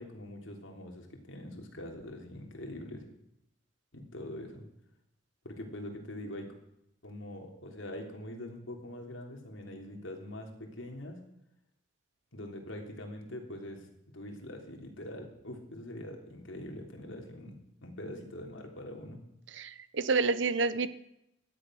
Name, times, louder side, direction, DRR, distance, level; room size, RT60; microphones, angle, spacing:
voice 1, 0.0-3.1 3.9-4.7 5.4-6.5 7.0-11.2 12.3-13.9 14.1-19.3, left 1 dB, 80° left, 2 dB, 3.4 m, -43 dB
voice 2, 19.5-20.9, right 4 dB, 65° right, 14 dB, 0.9 m, -29 dB
17.0 x 12.5 x 6.4 m, 0.80 s
head